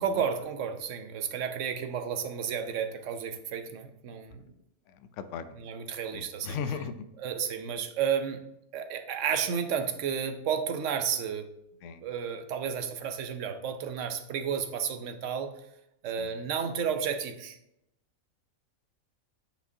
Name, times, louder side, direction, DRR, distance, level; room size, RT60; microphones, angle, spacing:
voice 1, 0.0-4.4 5.5-6.6 7.2-8.4 8.7-11.5 12.0-15.6 16.0-17.6, right 7 dB, 65° right, 7 dB, 0.9 m, -32 dB
voice 2, 4.9-5.6 6.1-6.9 11.8-12.0 16.2-16.3, left 6 dB, 70° left, 11 dB, 0.8 m, -37 dB
8.9 x 5.0 x 2.7 m, 0.83 s
omnidirectional pair, 1.5 m